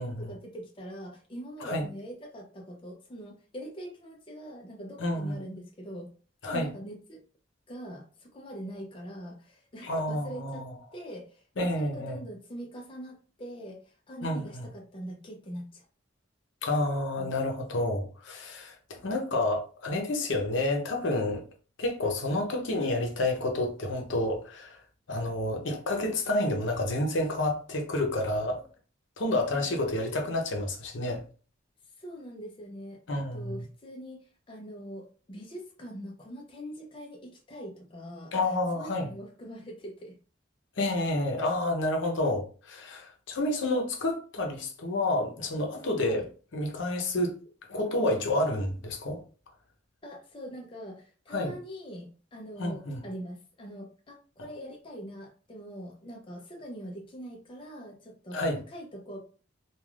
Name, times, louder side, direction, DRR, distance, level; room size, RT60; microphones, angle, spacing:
voice 1, 0.0-6.1 6.4-7.2 7.7-15.9 17.2-17.3 29.3-30.4 32.0-40.1 46.0-46.3 50.0-59.2, equal, 25° left, 0.5 m, -43 dB
voice 2, 5.0-5.4 6.4-6.7 9.8-10.7 11.6-12.2 14.2-14.7 16.6-21.4 21.8-24.8 25.1-28.6 29.2-31.2 33.1-33.6 38.3-39.1 40.8-46.2 46.5-47.3 47.7-49.2 51.3-51.5 52.6-53.0 58.3-58.6, left 1 dB, 75° left, 0.7 m, -29 dB
3.3 x 2.3 x 2.3 m
head